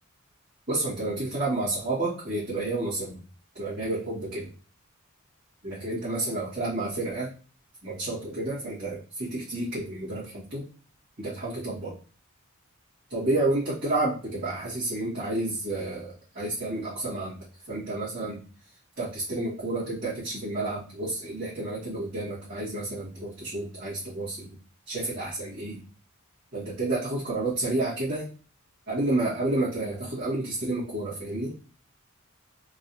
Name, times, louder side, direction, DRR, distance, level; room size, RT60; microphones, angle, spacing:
voice 1, 0.7-3.2 3.5-4.5 5.6-7.3 7.8-10.6 11.2-11.9 13.1-17.4 17.7-18.4 19.0-24.6 24.9-25.8 26.5-28.3 28.9-31.5, right 2 dB, 50° right, -11 dB, 1.7 m, -30 dB
3.9 x 2.8 x 2.6 m, 0.39 s
head